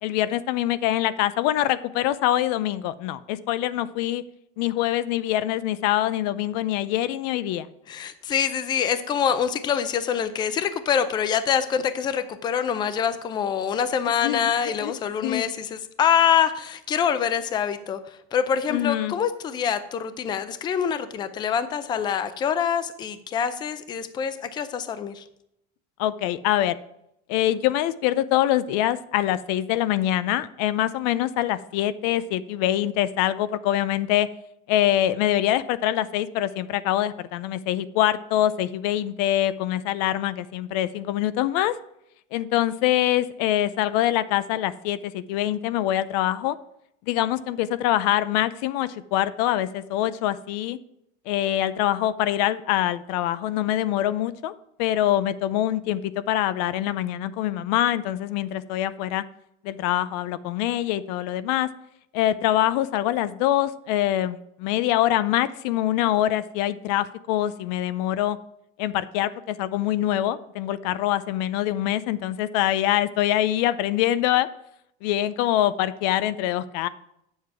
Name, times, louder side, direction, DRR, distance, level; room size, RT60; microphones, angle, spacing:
voice 1, 0.0-4.2 4.6-7.7 14.2-14.9 15.2-15.4 18.7-19.2 26.0-26.8 27.3-34.3 34.7-41.7 42.3-46.6 47.1-50.8 51.3-54.5 54.8-59.2 59.6-61.7 62.1-68.4 68.8-74.5 75.0-76.9, left 13 dB, 90° left, 15 dB, 0.6 m, -24 dB
voice 2, 7.9-25.2, left 8 dB, 20° left, 12 dB, 0.5 m, -25 dB
9.3 x 7.2 x 4.7 m, 0.78 s
cardioid pair, 180°, 21 cm